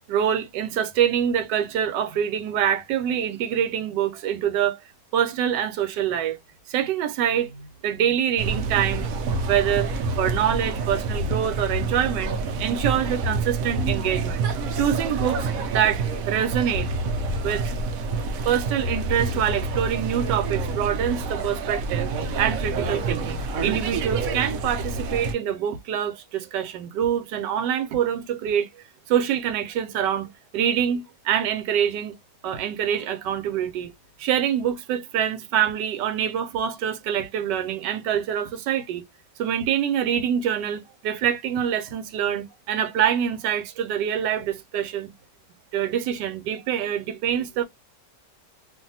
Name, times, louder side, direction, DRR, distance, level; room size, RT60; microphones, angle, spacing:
voice 1, 0.1-4.8 5.1-6.4 6.7-9.1 9.5-9.9 10.2-14.5 14.8-15.5 15.7-17.0 17.4-17.8 18.4-22.1 22.4-28.7 29.1-32.2 32.4-33.9 34.2-39.1 39.4-45.1 45.7-47.6, right 9 dB, 90° right, 1.2 m, -25 dB
sound 1, 8.4-25.3, right 3 dB, 70° right, 0.9 m, -27 dB
2.6 x 2.5 x 2.6 m
omnidirectional pair, 1.8 m